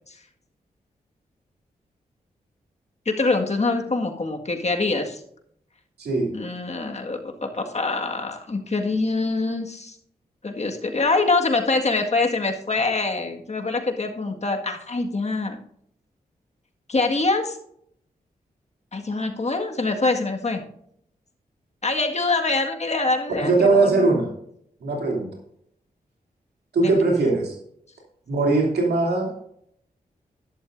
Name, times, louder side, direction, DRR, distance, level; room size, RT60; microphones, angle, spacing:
voice 1, 3.0-5.2 6.3-10.0 10.4-15.6 16.9-17.6 18.9-20.6 21.8-24.1 26.8-27.0, left 3 dB, 45° left, 3 dB, 1.8 m, -24 dB
voice 2, 6.0-6.3 23.4-24.3 24.8-25.3 26.7-27.6 28.3-29.4, right 3 dB, 85° right, 0 dB, 2.9 m, -20 dB
12.0 x 11.0 x 2.6 m, 0.70 s
cardioid pair, 45°, 16 cm